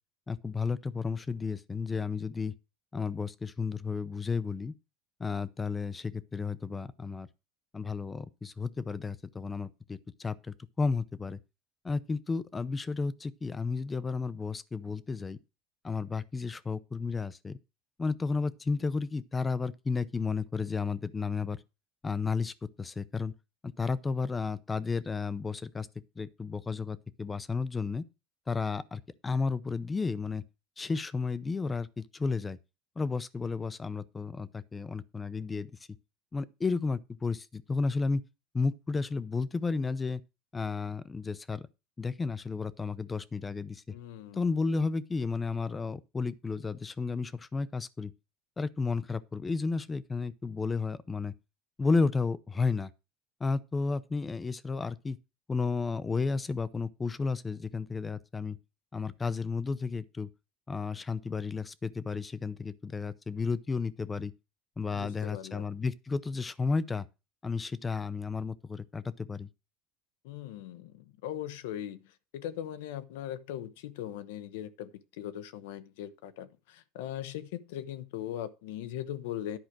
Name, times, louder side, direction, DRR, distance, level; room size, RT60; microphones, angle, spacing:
voice 1, 0.3-2.5 2.9-4.7 5.2-7.3 7.7-11.4 11.8-15.4 15.8-17.6 18.0-21.6 22.0-23.3 23.6-25.9 26.2-28.0 28.5-30.4 30.8-32.6 33.0-35.7 36.3-38.2 38.5-40.2 40.5-41.6 42.0-44.0 44.3-48.1 48.6-51.3 51.8-52.9 53.4-55.2 55.5-58.6 58.9-60.3 60.7-64.3 64.8-67.1 67.4-69.5, left 4 dB, 15° left, 0.6 m, -32 dB
voice 2, 43.9-44.5 64.9-65.6 70.2-72.0 72.3-74.9 75.2-79.6, left 11 dB, 90° left, 0.8 m, -39 dB
10.5 x 4.9 x 6.1 m
supercardioid pair, 125°, 0 cm